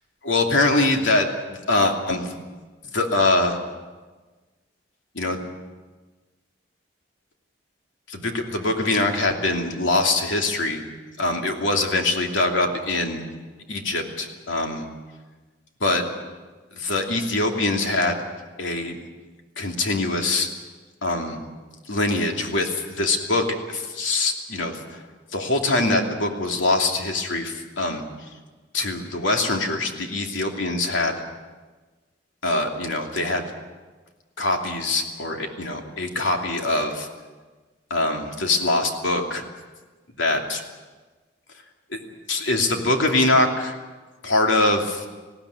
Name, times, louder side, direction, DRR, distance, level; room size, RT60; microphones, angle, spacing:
voice 1, 0.2-2.3 2.9-3.6 5.1-5.4 8.1-10.8 11.2-13.3 13.7-14.9 15.8-16.1 16.7-18.2 18.6-19.0 19.6-20.5 21.0-21.4 21.9-25.0 25.3-28.0 28.7-31.2 32.4-33.5 34.4-37.1 37.9-39.4 40.2-40.6 41.9-42.0 42.3-43.8 44.2-45.1, left 2 dB, 90° left, 3 dB, 2.8 m, -23 dB
20.0 x 16.0 x 9.7 m, 1.3 s
head